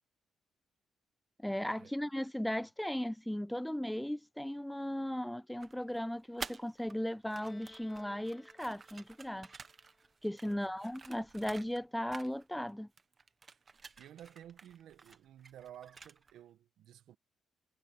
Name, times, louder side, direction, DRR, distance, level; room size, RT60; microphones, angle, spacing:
voice 1, 1.4-9.5 10.2-12.9, left 1 dB, 5° left, 0.3 m, -37 dB
sound 1, 5.6-6.9 7.2-11.8 12.1-12.7 13.0-16.4, right 4 dB, 35° right, 1.4 m, -51 dB
Bowed string instrument, 7.4-10.9, left 2 dB, 20° left, 2.4 m, -61 dB
voice 2, 10.4-10.8 14.0-17.2, right 11 dB, 80° right, 1.4 m, -54 dB
cardioid pair, 90°, 0 cm